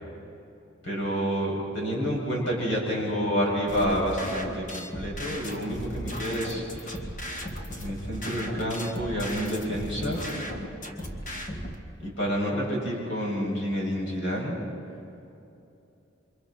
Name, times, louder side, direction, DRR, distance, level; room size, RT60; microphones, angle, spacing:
voice 1, 0.8-7.0 7.8-10.2 12.0-14.6, equal, 65° left, -2 dB, 7.1 m, -29 dB
sound 1, 3.7-11.7, equal, 40° left, 1.9 m, -36 dB
29.5 x 25.5 x 4.4 m, 2.8 s
head